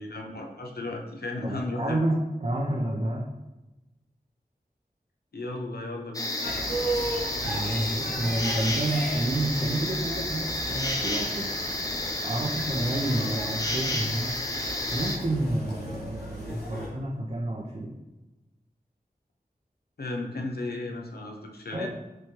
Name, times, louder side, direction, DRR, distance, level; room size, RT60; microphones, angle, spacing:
voice 1, 0.0-2.0 5.3-6.3 20.0-21.9, left 2 dB, 75° left, 1 dB, 0.7 m, -34 dB
voice 2, 1.4-3.2 7.4-11.5 12.2-14.3 14.9-17.9 21.7-21.9, right 1 dB, 40° right, -2 dB, 0.6 m, -29 dB
sound 1, 6.1-15.2, left 1 dB, 20° left, 0.6 m, -31 dB
sound 2, 6.4-16.9, right 1 dB, 90° left, 1.1 m, -37 dB
6.0 x 2.2 x 3.1 m, 1.0 s
wide cardioid pair, 55°, 16 cm